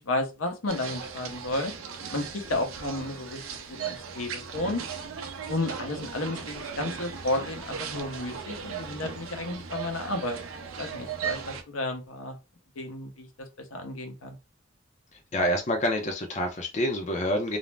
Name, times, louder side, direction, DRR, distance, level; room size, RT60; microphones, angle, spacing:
voice 1, 0.1-1.7 2.1-3.4 3.7-4.8 5.5-10.4 10.8-12.4 12.8-14.4, left 2 dB, 85° left, 0.7 m, -32 dB
sound 1, 0.7-11.6, right 6 dB, 85° right, 0.5 m, -37 dB
voice 2, 15.1-17.6, equal, 35° left, 0.5 m, -27 dB
2.4 x 2.0 x 3.2 m
head